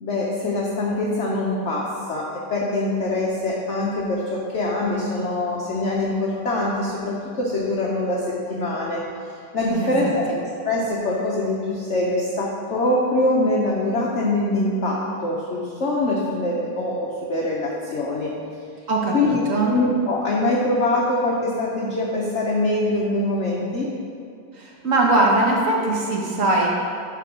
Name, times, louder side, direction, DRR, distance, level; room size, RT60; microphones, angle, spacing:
voice 1, 0.0-9.0 9.3-10.3 10.6-18.3 19.1-19.4 19.7-23.9, left 2 dB, 55° left, -4 dB, 0.8 m, -23 dB
voice 2, 9.7-10.1 18.9-19.7 24.5-26.7, right 2 dB, 45° right, -2 dB, 1.3 m, -21 dB
11.5 x 3.8 x 5.1 m, 2.4 s
omnidirectional pair, 2.2 m